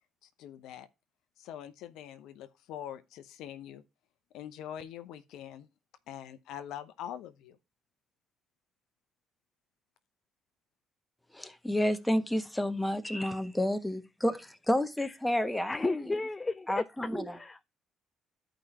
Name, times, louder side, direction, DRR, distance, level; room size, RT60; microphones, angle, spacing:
voice 1, 0.2-0.9 1.4-3.8 4.3-5.7 6.1-7.6, left 10 dB, 70° left, 0.8 m, -44 dB
voice 2, 11.3-16.2 16.7-17.4, left 1 dB, 5° left, 1.4 m, -30 dB
voice 3, 15.6-16.9 17.3-17.6, left 3 dB, 25° left, 0.5 m, -34 dB
14.0 x 5.1 x 2.9 m
hypercardioid pair, 55°, 0 cm